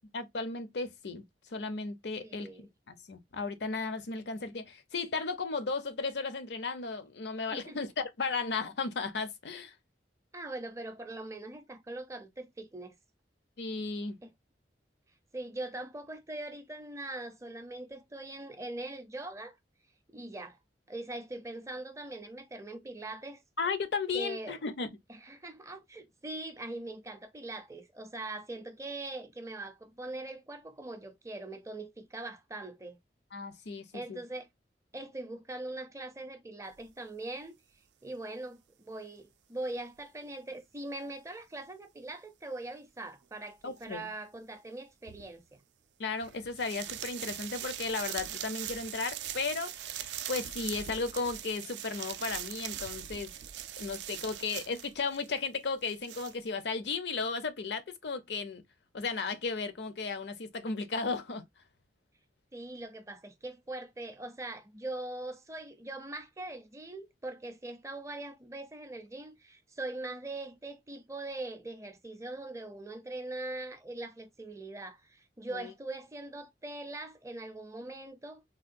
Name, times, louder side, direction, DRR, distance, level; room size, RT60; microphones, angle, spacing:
voice 1, 0.1-1.2 1.5-9.7 13.6-14.2 23.6-24.9 33.3-34.2 43.6-44.1 46.0-53.3 53.8-58.6 58.9-61.4 75.5-75.7, left 4 dB, 70° left, 0.6 m, -35 dB
voice 2, 2.2-2.7 7.5-7.8 10.3-12.9 14.2-14.3 15.3-19.6 20.1-20.6 20.9-23.4 24.1-24.6 25.1-33.0 33.9-34.5 34.9-37.6 38.0-45.6 62.5-78.4, right 2 dB, 15° right, 0.5 m, -42 dB
sound 1, 43.8-43.9 45.1-45.3 46.2-55.3 55.6-56.4, right 11 dB, 75° right, 0.4 m, -41 dB
3.5 x 2.2 x 2.5 m
head